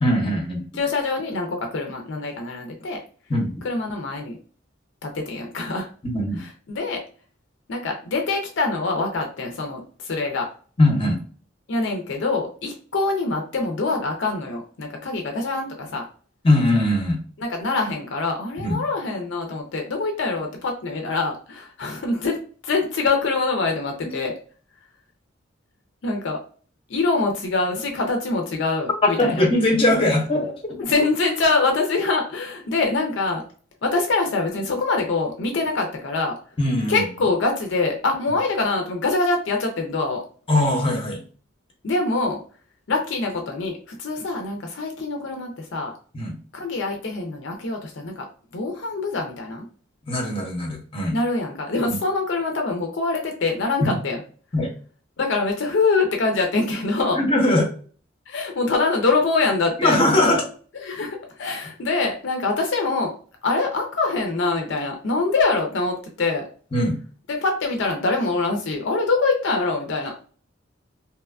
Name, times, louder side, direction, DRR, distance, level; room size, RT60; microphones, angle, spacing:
voice 1, 0.0-0.6 3.3-3.5 6.0-6.4 10.8-11.2 16.4-17.2 18.6-18.8 24.0-24.1 29.1-30.6 36.6-37.0 40.5-41.2 46.1-46.4 50.1-51.2 53.8-54.0 54.5-54.7 57.2-57.7 59.8-60.5 66.7-67.0, left 1 dB, 30° left, 0 dB, 0.7 m, -20 dB
voice 2, 0.8-3.0 3.6-4.4 5.0-5.9 6.7-7.0 7.7-10.5 11.7-16.1 17.5-22.4 22.6-24.3 26.0-26.4 26.9-29.4 30.8-33.4 33.8-36.3 36.9-40.2 41.8-42.4 42.9-45.9 46.5-48.2 48.5-49.7 51.1-54.2 55.2-57.2 58.3-60.0 60.8-63.1 63.4-66.4 67.3-70.1, left 3 dB, 65° left, 2 dB, 0.5 m, -24 dB
2.8 x 2.2 x 2.3 m, 0.42 s
head